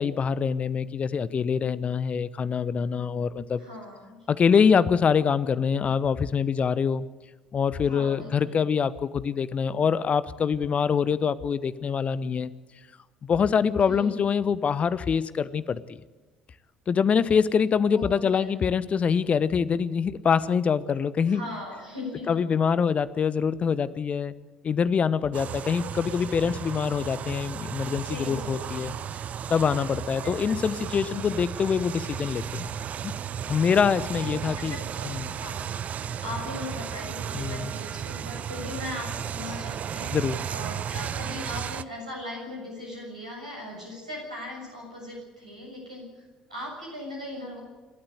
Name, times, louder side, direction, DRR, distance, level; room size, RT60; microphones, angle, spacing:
voice 1, 0.0-3.6 4.3-7.1 7.5-12.5 13.2-15.8 16.9-21.4 22.3-24.3 24.6-28.9 29.5-32.7 33.0-33.1 33.5-34.8 35.0-35.3 37.3-37.7 40.1-40.4, left 6 dB, 35° left, 18 dB, 0.9 m, -25 dB
voice 2, 3.6-4.2 7.9-8.6 13.9-14.2 17.9-18.5 21.3-22.4 27.9-28.6 30.2-31.3 34.2-35.1 35.4-35.7 36.2-40.1 40.5-46.2 46.5-47.6, left 1 dB, 85° right, -1 dB, 6.9 m, -39 dB
sound 1, 25.3-41.8, right 8 dB, 40° right, 0.6 m, -34 dB
27.5 x 13.0 x 8.2 m, 1.3 s
figure-of-eight pair, 55°, 4 cm